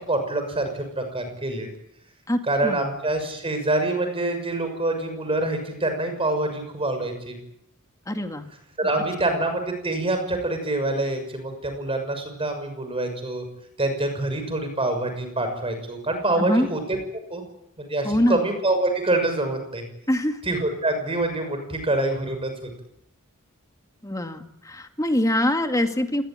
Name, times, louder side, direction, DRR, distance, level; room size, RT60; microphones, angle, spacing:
voice 1, 0.1-1.7 2.5-7.4 8.8-13.4 13.8-17.0 17.3-17.4 17.8-19.8 20.5-22.5, right 2 dB, 25° right, 7 dB, 6.3 m, -26 dB
voice 2, 2.3-2.9 8.1-8.5 9.3-9.4 16.4-16.7 18.0-18.5 20.1-20.4 24.0-26.2, left 1 dB, 15° left, 6 dB, 2.1 m, -24 dB
27.0 x 20.0 x 8.9 m, 0.79 s
head